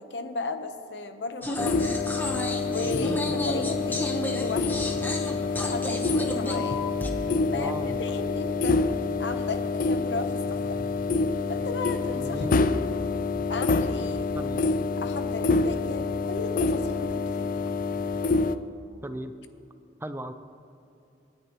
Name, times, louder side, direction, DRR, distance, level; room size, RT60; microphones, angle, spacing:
voice 1, 0.0-1.9 2.7-3.2 3.4-6.8 7.5-8.8 9.2-10.8 11.5-12.4 13.5-14.3 15.0-17.7, left 3 dB, 85° left, 8 dB, 0.9 m, -35 dB
sound 1, 1.4-7.1, left 1 dB, 10° left, 1.0 m, -32 dB
sound 2, 1.6-18.6, left 3 dB, 50° left, 0.4 m, -27 dB
voice 2, 2.8-3.6 7.5-8.0 12.1-12.6 14.3-14.7 19.0-19.3 20.0-20.3, right 1 dB, 15° right, 9 dB, 0.5 m, -36 dB
26.5 x 9.9 x 3.0 m, 2.6 s
head